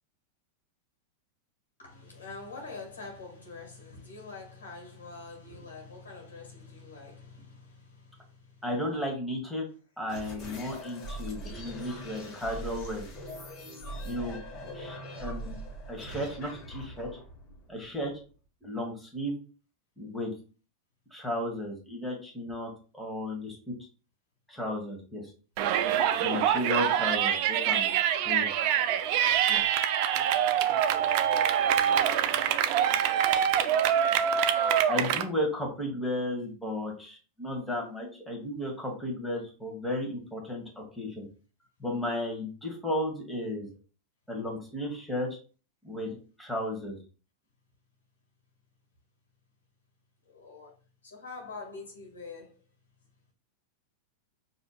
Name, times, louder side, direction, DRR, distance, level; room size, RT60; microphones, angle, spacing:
voice 1, 1.8-8.6 31.8-33.4 50.2-50.7 51.0-52.6, left 3 dB, 90° left, 1.5 m, -45 dB
voice 2, 8.6-9.7 10.0-13.1 14.0-14.4 14.7-15.5 15.9-17.1 17.7-18.1 18.6-19.4 20.0-20.3 21.1-23.7 24.5-25.3 26.2-28.0 28.2-28.5 29.5-29.6 34.9-41.2 41.8-43.7 44.3-45.4 45.8-47.0, left 1 dB, ahead, 1.4 m, -34 dB
sound 1, 10.1-18.3, right 1 dB, 40° left, 1.3 m, -41 dB
Yell, 25.6-35.2, right 9 dB, 55° right, 0.4 m, -25 dB
4.9 x 2.7 x 2.3 m
hypercardioid pair, 105°, 0 cm